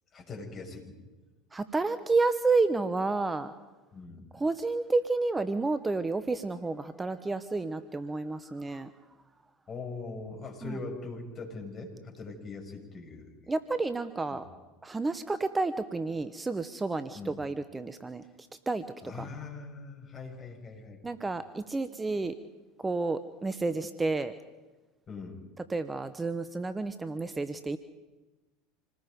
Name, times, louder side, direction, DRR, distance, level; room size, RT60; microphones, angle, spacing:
voice 1, 0.1-1.0 3.9-4.4 9.7-13.3 14.3-14.4 17.2-17.4 19.0-21.0 25.1-25.4, left 3 dB, 35° left, 1 dB, 7.0 m, -41 dB
voice 2, 1.5-3.5 4.3-8.9 10.6-10.8 13.5-14.5 14.8-18.2 18.7-18.8 19.1-19.3 21.0-22.3 22.8-24.3 25.7-27.8, right 3 dB, 15° right, 12 dB, 1.1 m, -30 dB
27.5 x 19.5 x 5.4 m, 1.2 s
hypercardioid pair, 80°, 0 cm